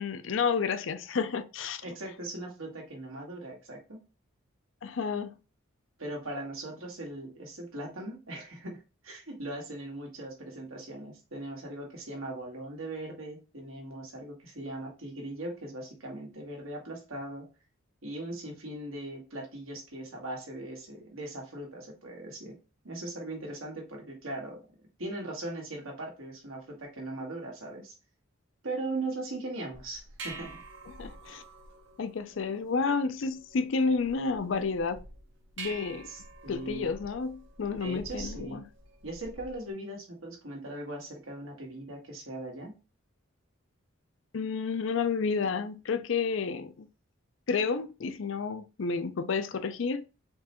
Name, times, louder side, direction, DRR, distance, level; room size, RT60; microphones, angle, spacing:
voice 1, 0.0-1.8 4.8-5.3 30.9-31.4 32.0-35.0 35.6-36.1 36.5-38.6 44.3-46.9 47.5-50.0, left 5 dB, 65° left, 0.5 m, -30 dB
voice 2, 1.8-4.0 6.0-17.5 18.0-22.6 22.8-27.9 28.6-30.6 36.1-36.9 37.8-38.6 39.0-42.7, right 2 dB, 80° right, 1.5 m, -39 dB
sound 1, 29.7-39.7, right 3 dB, 60° right, 0.8 m, -47 dB
4.5 x 3.2 x 2.9 m
head